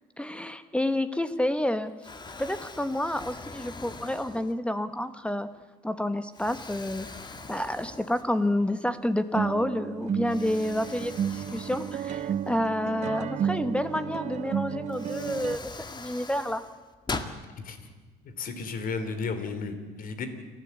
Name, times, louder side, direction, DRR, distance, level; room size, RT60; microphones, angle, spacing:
voice 1, 0.2-1.9 2.4-5.5 5.8-7.1 7.5-16.6, left 1 dB, 5° left, 12 dB, 1.0 m, -29 dB
Explosion, 1.3-1.7 2.0-4.8 5.4-5.6 6.3-8.6 8.9-9.0 10.3-12.9 14.3-14.4 14.9-17.4, left 3 dB, 25° left, 1.8 m, -42 dB
sound 1, 8.4-8.5 9.3-15.6, right 8 dB, 45° right, 0.5 m, -32 dB
voice 2, 17.6-17.9 18.2-20.3, left 4 dB, 55° left, 9 dB, 3.3 m, -34 dB
29.5 x 12.0 x 8.3 m, 1.4 s
cardioid pair, 110°, 17 cm